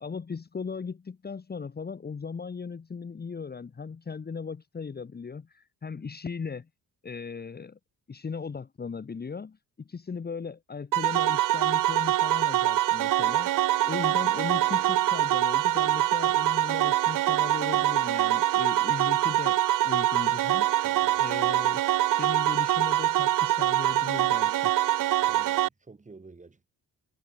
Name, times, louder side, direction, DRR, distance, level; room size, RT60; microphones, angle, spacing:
voice 1, 0.0-6.7 7.0-7.8 8.1-13.5 13.9-20.7 21.2-24.7, left 5 dB, 25° left, 1.9 m, -37 dB
sound 1, 10.9-25.7, right 14 dB, 65° right, 0.6 m, -24 dB
voice 2, 20.8-21.2 25.2-26.7, right 3 dB, 20° right, 6.1 m, -51 dB
wide cardioid pair, 155°, 35 cm